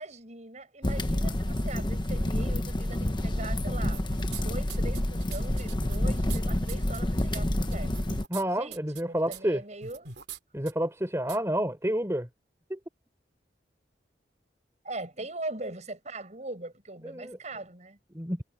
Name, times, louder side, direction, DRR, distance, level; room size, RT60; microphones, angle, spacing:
voice 1, 0.0-4.0 4.4-7.9 8.5-10.1 14.8-18.0, right 2 dB, 40° right, 7.6 m, -41 dB
sound 1, 0.8-8.2, left 1 dB, 25° left, 1.0 m, -28 dB
sound 2, 3.8-4.4 4.7-6.4 6.7-7.0 7.3-7.4 7.7-8.4 8.7-9.0 9.3-9.4 9.8-10.4 10.7-10.8 11.3-11.4, right 6 dB, 65° right, 3.4 m, -42 dB
voice 2, 8.3-9.6 10.5-12.3 12.7-12.8 17.0-17.4 18.1-18.4, right 1 dB, 15° right, 3.7 m, -29 dB
head